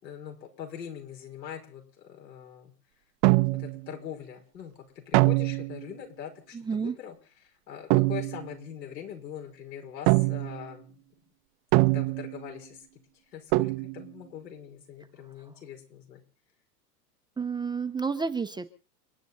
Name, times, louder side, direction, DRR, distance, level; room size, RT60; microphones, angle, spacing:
voice 1, 0.0-2.7 3.6-11.0 11.9-12.8 13.3-16.2, left 9 dB, 80° left, 3 dB, 5.6 m, -42 dB
sound 1, 3.2-3.9 5.1-5.8 7.9-8.5 10.1-10.7 11.7-12.5 13.5-14.1, right 25 dB, 40° right, 0.8 m, -23 dB
voice 2, 17.4-18.7, right 5 dB, 10° right, 9 dB, 0.8 m, -30 dB
30.0 x 10.0 x 4.2 m, 0.38 s
hypercardioid pair, 115°, 50 cm